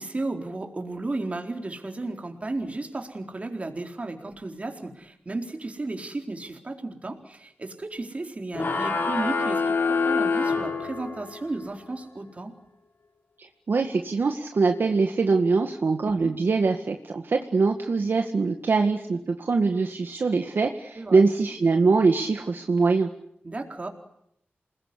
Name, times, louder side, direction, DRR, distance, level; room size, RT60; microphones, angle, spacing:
voice 1, 0.0-12.5 16.0-16.3 21.0-21.2 23.4-23.9, right 2 dB, 35° right, 3 dB, 4.3 m, -34 dB
sound 1, 8.5-11.4, left 4 dB, 60° left, 5.0 m, -26 dB
voice 2, 13.4-23.1, right 4 dB, 60° right, 4 dB, 2.0 m, -23 dB
28.5 x 21.0 x 9.9 m, 0.74 s
wide cardioid pair, 110°, 4 cm